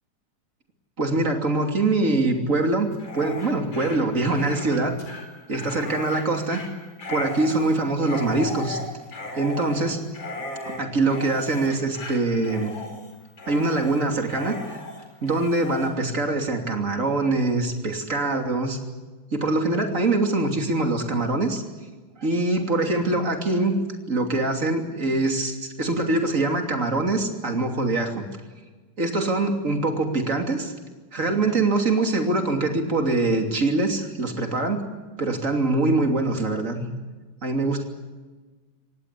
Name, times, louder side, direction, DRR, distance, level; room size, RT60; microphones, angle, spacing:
voice 1, 1.0-4.9 5.5-6.6 7.1-8.8 9.4-10.0 10.8-12.7 13.5-14.6 15.2-18.8 19.3-21.6 22.2-23.7 24.1-28.3 29.0-30.7 31.1-34.8 35.2-36.8 37.4-37.8, right 2 dB, 25° right, 4 dB, 3.0 m, -23 dB
Dog, 2.9-15.9, left 2 dB, 35° left, 5.1 m, -37 dB
25.5 x 18.5 x 8.5 m, 1.3 s
omnidirectional pair, 3.5 m